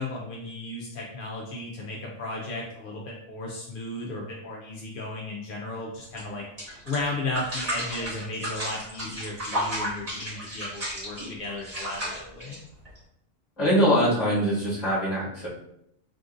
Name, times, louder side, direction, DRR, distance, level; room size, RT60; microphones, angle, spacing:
voice 1, 0.0-6.4 6.9-12.6, left 2 dB, 65° left, -3 dB, 0.5 m, -35 dB
sound 1, 6.1-6.2 6.6-13.0, equal, 30° right, 1.4 m, -33 dB
voice 2, 13.6-15.5, equal, 35° left, -6 dB, 1.2 m, -23 dB
3.6 x 2.5 x 2.5 m, 0.77 s
omnidirectional pair, 1.4 m